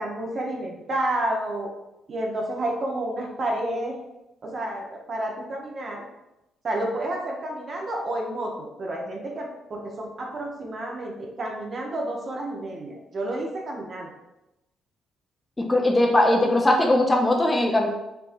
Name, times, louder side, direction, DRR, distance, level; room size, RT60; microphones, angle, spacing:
voice 1, 0.0-1.7 2.1-4.0 4.4-6.0 6.6-14.1, right 1 dB, 45° right, 0 dB, 0.8 m, -30 dB
voice 2, 15.7-17.9, left 1 dB, 15° left, 1 dB, 0.5 m, -20 dB
4.5 x 2.7 x 2.5 m, 0.93 s
cardioid pair, 90°, 0 cm